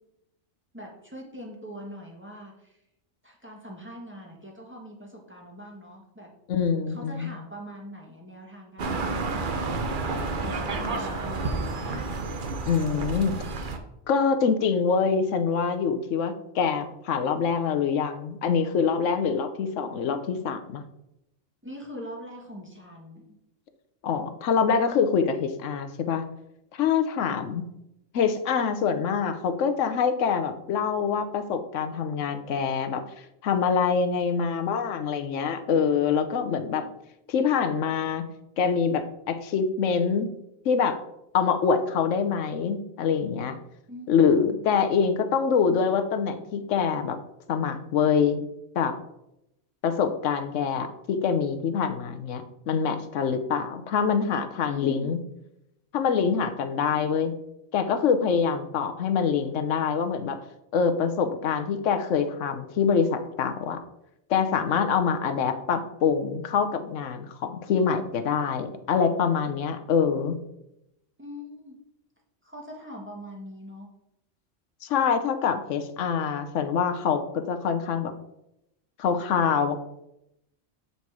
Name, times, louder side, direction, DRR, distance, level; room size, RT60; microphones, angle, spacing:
voice 1, 0.7-2.8 3.2-6.3 6.9-12.0 21.6-23.4 27.2-27.4 43.9-44.1 54.7-55.1 71.2-71.8 72.4-73.9, equal, 10° right, -2 dB, 1.5 m, -42 dB
voice 2, 6.5-7.3 12.7-13.4 14.1-20.8 24.0-26.2 26.7-27.6 28.1-33.0 33.4-36.8 37.3-38.2 38.6-40.3 40.6-41.0 41.3-43.6 44.1-47.2 47.5-48.4 48.7-48.9 49.8-55.2 55.9-57.3 57.7-60.4 60.7-63.8 64.3-70.4 74.8-78.1 79.0-79.8, left 6 dB, 90° left, 8 dB, 1.1 m, -25 dB
sound 1, 8.8-13.8, right 3 dB, 50° right, 0.8 m, -30 dB
7.8 x 4.1 x 4.7 m, 0.85 s
omnidirectional pair, 1.2 m